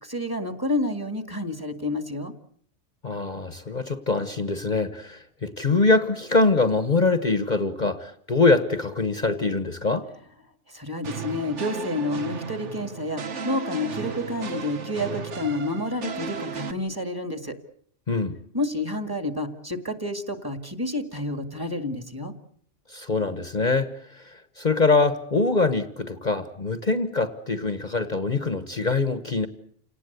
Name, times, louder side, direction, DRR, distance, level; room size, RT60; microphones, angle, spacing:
voice 1, 0.0-2.3 10.7-17.5 18.5-22.3, left 1 dB, 20° right, 8 dB, 2.1 m, -29 dB
voice 2, 3.0-10.1 18.1-18.4 22.9-29.5, left 3 dB, 40° left, 10 dB, 1.3 m, -24 dB
sound 1, 11.0-16.7, right 6 dB, 75° right, 1.6 m, -35 dB
29.0 x 18.5 x 8.2 m, 0.64 s
omnidirectional pair, 1.2 m